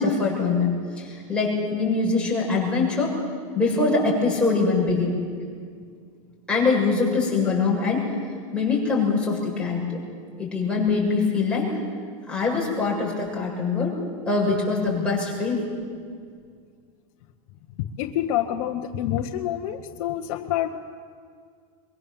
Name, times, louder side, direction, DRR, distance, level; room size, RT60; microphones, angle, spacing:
voice 1, 0.0-3.2 3.5-5.2 6.5-8.1 8.5-10.0 10.4-11.8 12.3-14.0 14.3-15.7, left 4 dB, 5° left, -4 dB, 7.1 m, -23 dB
voice 2, 17.8-20.8, left 11 dB, 60° left, 2 dB, 1.2 m, -27 dB
23.5 x 22.5 x 7.5 m, 2.1 s
supercardioid pair, 140°, 18 cm